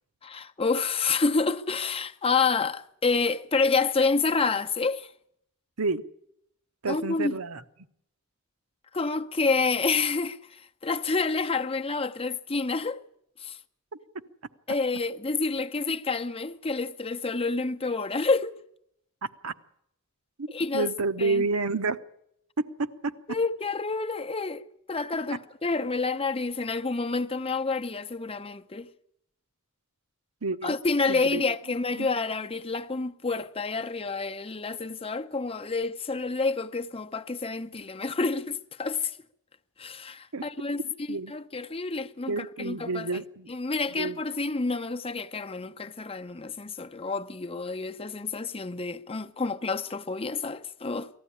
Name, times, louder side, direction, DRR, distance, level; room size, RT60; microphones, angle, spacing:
voice 1, 0.2-5.1 6.9-7.3 8.9-13.0 13.4-13.6 14.7-18.6 20.5-20.9 21.2-21.4 23.3-24.6 24.9-28.9 30.6-39.2 39.8-40.8 41.1-43.2 43.5-51.1, left 4 dB, 25° left, 0.7 m, -28 dB
voice 2, 6.8-7.6 19.2-19.5 20.4-22.0 22.6-23.2 30.4-30.7 31.1-31.4 32.0-32.1 40.3-40.4 40.8-41.3 42.3-43.5 44.0-44.2, right 3 dB, 75° right, 1.0 m, -30 dB
19.5 x 14.5 x 9.9 m
head